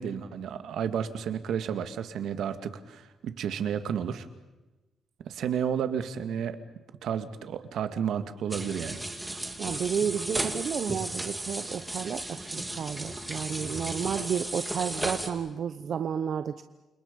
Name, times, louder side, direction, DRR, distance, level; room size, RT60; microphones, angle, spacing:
voice 1, 0.0-4.3 5.3-6.6 7.0-9.0, right 8 dB, 75° right, 10 dB, 2.0 m, -31 dB
sound 1, 8.5-15.3, right 1 dB, 10° right, 2.7 m, -35 dB
voice 2, 9.6-16.6, right 8 dB, 55° right, 10 dB, 0.9 m, -32 dB
29.5 x 27.0 x 5.4 m, 1.1 s
cardioid pair, 135°, 0 cm